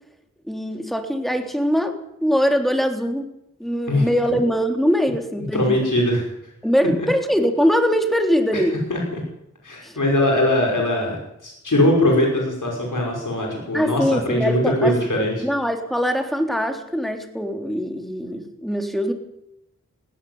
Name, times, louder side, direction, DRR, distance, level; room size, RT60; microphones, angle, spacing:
voice 1, 0.5-2.0 2.2-3.3 3.6-5.9 6.6-8.8 9.8-10.0 13.7-15.0 15.4-19.1, equal, ahead, 5 dB, 3.5 m, -22 dB
voice 2, 5.5-6.2 8.9-9.0 9.6-11.2 11.4-15.3, left 1 dB, 80° left, 0 dB, 5.9 m, -20 dB
18.5 x 15.5 x 9.6 m, 0.83 s
wide cardioid pair, 45°, 31 cm